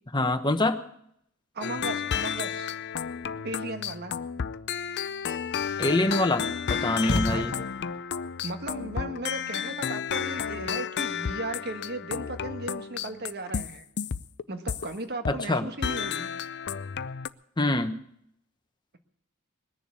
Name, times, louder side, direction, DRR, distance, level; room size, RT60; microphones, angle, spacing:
voice 1, 0.1-0.8 5.8-7.5 15.3-15.7 17.6-17.9, left 2 dB, 20° left, 8 dB, 1.0 m, -25 dB
voice 2, 1.5-2.8 3.4-4.1 7.3-7.5 8.4-13.9 14.5-16.3, right 2 dB, 50° right, 7 dB, 1.4 m, -36 dB
sound 1, 1.6-14.9 15.2-15.6 15.8-17.3, left 7 dB, 50° left, 0.5 m, -32 dB
sound 2, 7.0-8.0, left 1 dB, 80° left, 1.1 m, -30 dB
21.0 x 7.0 x 8.4 m, 0.73 s
head